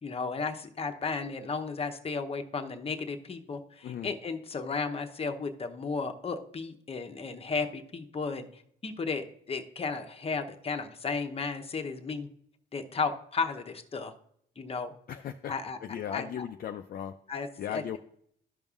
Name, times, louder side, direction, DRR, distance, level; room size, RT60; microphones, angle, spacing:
voice 1, 0.0-12.3 12.7-14.1 14.6-14.9 15.5-15.8 16.1-16.4 17.3-18.0, left 4 dB, 30° left, 6 dB, 0.8 m, -34 dB
voice 2, 15.1-15.5 15.8-17.1 17.6-18.0, left 9 dB, 50° left, 6 dB, 0.4 m, -37 dB
12.5 x 5.3 x 2.4 m, 0.68 s
cardioid pair, 90°, 20 cm